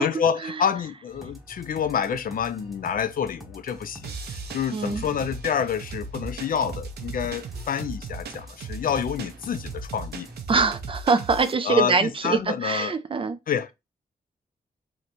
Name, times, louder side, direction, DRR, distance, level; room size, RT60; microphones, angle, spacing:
voice 1, 0.0-10.3 11.6-12.9 13.5-13.7, left 7 dB, 60° left, 0.4 m, -28 dB
sound 1, 1.1-10.4, equal, ahead, 0.8 m, -46 dB
sound 2, 4.0-11.5, right 4 dB, 85° right, 0.6 m, -37 dB
voice 2, 4.7-5.0 10.5-13.4, right 4 dB, 35° right, 0.4 m, -24 dB
3.0 x 2.1 x 3.8 m
wide cardioid pair, 130°, 16 cm